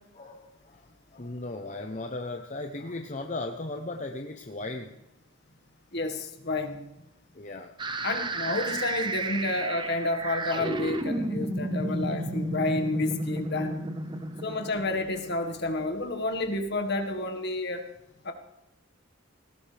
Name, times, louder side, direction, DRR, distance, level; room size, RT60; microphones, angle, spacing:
voice 1, 0.1-4.9 7.3-8.1 11.4-11.5 11.9-12.0 14.1-14.4, left 2 dB, 35° left, 3 dB, 0.9 m, -37 dB
voice 2, 5.9-6.8 8.0-13.9 14.4-17.8 18.2-18.3, left 2 dB, 50° left, 5 dB, 1.8 m, -30 dB
sound 1, 7.8-15.7, right 1 dB, 20° right, 0.8 m, -32 dB
18.5 x 16.5 x 3.5 m, 0.87 s
head